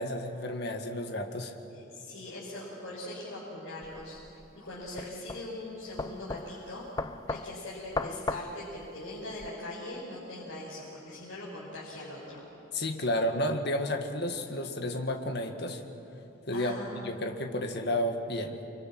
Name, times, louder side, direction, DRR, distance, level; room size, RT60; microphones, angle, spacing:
voice 1, 0.0-1.5 12.7-15.8 16.5-16.8 17.0-18.6, left 1 dB, 55° left, 5 dB, 1.9 m, -31 dB
voice 2, 1.7-6.8 7.2-12.4 16.5-17.0, left 1 dB, 75° left, -8 dB, 6.3 m, -41 dB
sound 1, 3.8-9.5, left 3 dB, 20° left, 0.5 m, -38 dB
30.0 x 25.0 x 6.2 m, 2.9 s
head